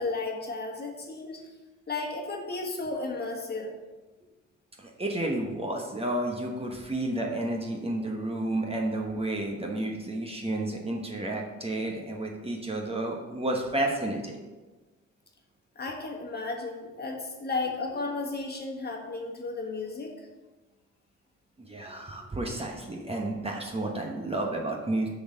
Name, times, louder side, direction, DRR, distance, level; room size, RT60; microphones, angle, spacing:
voice 1, 0.0-1.4 1.9-3.7 15.7-20.2, left 3 dB, 35° left, 0 dB, 1.5 m, -34 dB
voice 2, 4.8-14.4 21.6-25.1, right 1 dB, 20° right, 0 dB, 1.1 m, -31 dB
6.7 x 4.1 x 6.5 m, 1.2 s
cardioid pair, 90°, 30 cm